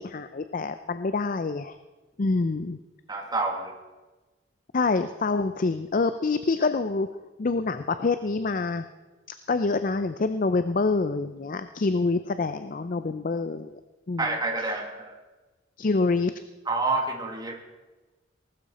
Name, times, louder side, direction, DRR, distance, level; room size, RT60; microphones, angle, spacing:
voice 1, 0.0-1.8 2.2-2.8 4.7-7.1 7.4-8.9 9.5-13.8 14.1-14.3 14.6-14.8 15.8-16.3, left 3 dB, 45° left, 11 dB, 0.5 m, -26 dB
voice 2, 3.1-3.7 14.2-15.1 16.7-17.6, right 3 dB, 20° right, 2 dB, 1.9 m, -28 dB
19.5 x 12.5 x 4.2 m, 1.2 s
head